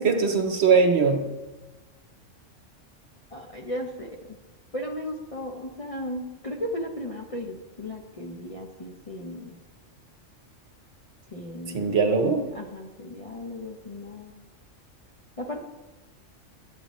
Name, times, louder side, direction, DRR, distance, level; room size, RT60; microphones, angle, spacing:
voice 1, 0.0-1.3 11.7-12.4, right 5 dB, 60° right, 4 dB, 1.2 m, -21 dB
voice 2, 3.3-4.4 4.7-9.6 11.3-12.0 12.5-14.3 15.4-15.6, left 1 dB, 35° left, -1 dB, 0.6 m, -35 dB
11.5 x 8.4 x 3.0 m, 1.2 s
omnidirectional pair, 1.3 m